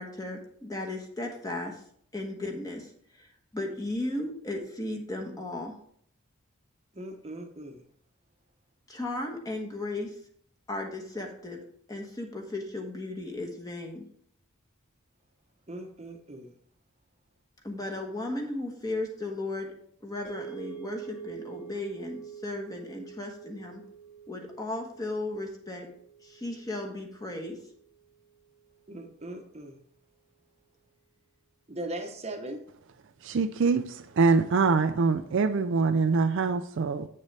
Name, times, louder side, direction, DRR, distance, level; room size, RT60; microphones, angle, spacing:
voice 1, 0.0-1.8 2.1-2.9 3.2-3.3 3.5-5.7 8.9-10.1 10.7-11.6 11.9-14.0 17.6-19.7 20.0-23.8 24.3-25.9 26.2-27.6, left 2 dB, 15° left, 1.2 m, -35 dB
voice 2, 6.9-7.8 15.7-16.5 28.9-29.8 31.7-32.6, right 1 dB, 30° right, 0.9 m, -39 dB
sound 1, 20.2-28.5, right 7 dB, 85° left, 2.9 m, -46 dB
voice 3, 33.2-37.1, right 4 dB, 55° right, 0.4 m, -24 dB
8.5 x 6.5 x 3.3 m
head